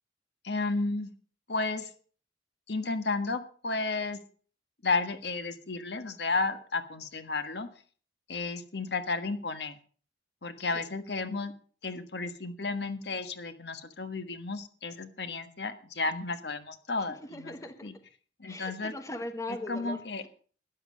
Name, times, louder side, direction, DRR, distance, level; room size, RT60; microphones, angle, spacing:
voice 1, 0.4-1.1 1.5-1.9 2.7-4.2 4.8-7.7 8.3-9.8 10.4-11.5 11.8-17.5 17.8-17.9 18.4-18.9 19.7-20.2, left 3 dB, 70° left, 9 dB, 1.5 m, -32 dB
voice 2, 17.0-17.9 18.5-20.3, left 1 dB, 15° left, 7 dB, 1.2 m, -40 dB
13.0 x 10.5 x 6.4 m, 0.43 s
head